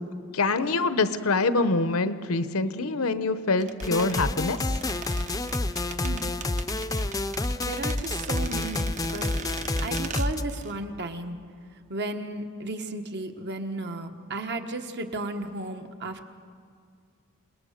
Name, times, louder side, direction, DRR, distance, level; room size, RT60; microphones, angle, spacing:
voice 1, 0.3-4.7, left 3 dB, 75° left, 12 dB, 1.0 m, -25 dB
sound 1, 3.6-10.8 11.0-11.1, right 6 dB, 35° right, 0.8 m, -41 dB
sound 2, 3.8-10.4, left 2 dB, 15° left, 0.6 m, -29 dB
voice 2, 6.0-6.4 7.6-9.3 9.8-11.4 11.9-16.3, right 2 dB, 55° right, 6 dB, 1.4 m, -34 dB
28.5 x 19.0 x 6.6 m, 2.2 s
head